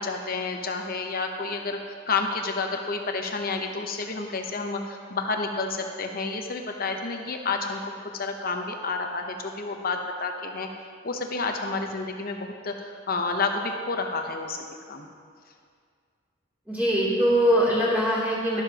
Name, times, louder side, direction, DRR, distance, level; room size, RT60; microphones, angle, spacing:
voice 1, 0.0-10.7 11.0-14.6 14.9-15.1, left 3 dB, 50° left, 3 dB, 1.0 m, -30 dB
voice 2, 16.7-18.6, equal, 10° right, -8 dB, 3.1 m, -22 dB
12.5 x 11.5 x 3.0 m, 2.2 s
head